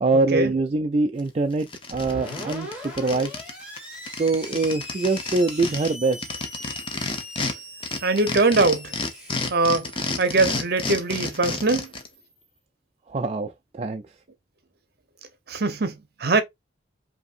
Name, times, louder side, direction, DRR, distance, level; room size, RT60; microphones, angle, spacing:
voice 1, 0.0-3.3 4.2-6.3 13.1-14.0, right 3 dB, 35° right, 0.3 m, -24 dB
sound 1, 1.2-1.3 1.6-3.5 3.8-3.9 4.1-7.5 7.8-12.1, left 3 dB, 25° left, 0.7 m, -30 dB
Screech, 1.9-12.4, left 1 dB, 5° right, 2.2 m, -41 dB
voice 2, 8.0-8.9 9.5-9.9 10.2-11.9 15.5-15.9 16.2-16.4, right 3 dB, 55° right, 0.8 m, -21 dB
5.2 x 2.8 x 2.5 m
head